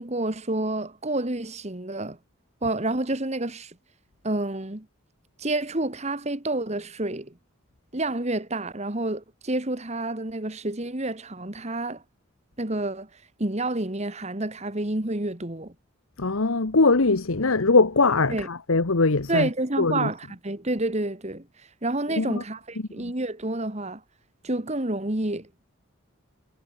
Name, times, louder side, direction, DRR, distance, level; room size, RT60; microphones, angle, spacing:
voice 1, 0.0-2.2 2.6-3.8 4.2-4.9 5.4-7.3 7.9-12.0 12.6-13.1 13.4-15.7 18.3-18.5 19.3-21.5 21.8-24.0 24.4-25.5, right 2 dB, 30° right, 1.7 m, -29 dB
voice 2, 16.2-19.5 19.8-20.1 22.2-22.4 23.0-23.1, left 3 dB, 80° left, 1.2 m, -21 dB
head